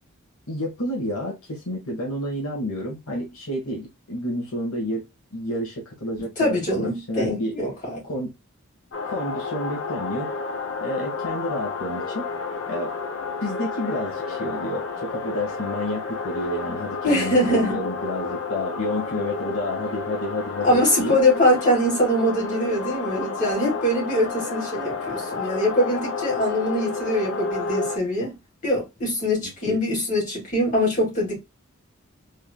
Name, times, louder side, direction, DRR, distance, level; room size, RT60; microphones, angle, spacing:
voice 1, 0.5-7.6 8.0-8.3 9.0-10.3 10.8-12.3 12.7-12.9 13.4-21.2 29.4-29.8, left 1 dB, 80° left, 1.4 m, -30 dB
voice 2, 6.4-8.0 17.0-17.8 20.6-28.3 28.6-31.4, left 1 dB, 35° left, 2.2 m, -23 dB
sound 1, 8.9-28.0, left 4 dB, 60° left, 0.7 m, -31 dB
3.6 x 3.4 x 2.2 m
head